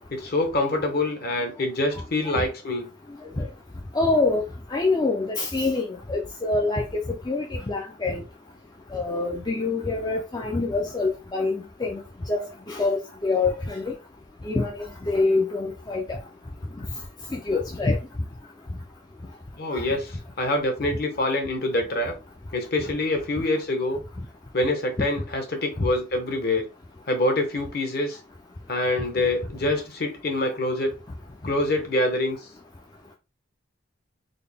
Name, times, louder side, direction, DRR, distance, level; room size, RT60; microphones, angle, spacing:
voice 1, 0.1-2.9 19.6-22.1 22.5-24.0 24.5-26.6 27.1-28.2 28.7-30.9 31.4-32.4, left 2 dB, 50° left, 0.8 m, -25 dB
voice 2, 3.9-8.2 8.9-12.0 12.3-13.9 14.5-16.2 17.3-18.0 19.7-19.8, left 3 dB, 20° left, 0.4 m, -26 dB
3.9 x 2.1 x 3.4 m
head